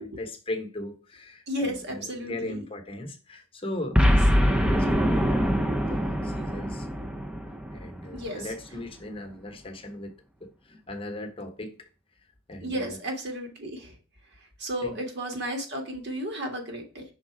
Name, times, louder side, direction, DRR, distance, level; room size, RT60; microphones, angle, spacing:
voice 1, 0.0-4.0 4.3-7.2 7.7-10.1 10.4-11.9 12.5-13.0 14.8-14.9, left 1 dB, 25° left, 1.0 m, -38 dB
voice 2, 1.5-2.6 4.0-4.1 8.1-8.4 12.6-13.9 14.6-17.0, equal, 55° right, 1.7 m, -33 dB
Boom, 3.9-8.3, equal, 5° right, 0.5 m, -23 dB
5.7 x 3.8 x 4.6 m
head